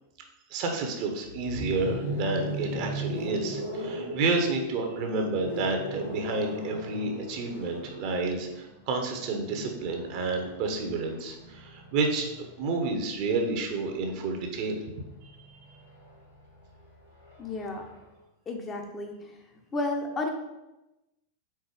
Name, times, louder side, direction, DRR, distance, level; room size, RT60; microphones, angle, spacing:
voice 1, 0.5-12.3 12.6-14.8 15.2-15.3, right 3 dB, 45° right, 3 dB, 1.0 m, -30 dB
sound 1, 1.2-13.2 14.5-18.1, equal, 80° left, 2.1 m, -38 dB
voice 2, 17.4-17.8 18.5-19.3 19.7-20.3, left 2 dB, 25° left, 2 dB, 0.8 m, -32 dB
4.6 x 4.0 x 5.1 m, 0.99 s
figure-of-eight pair, 90°, 0 cm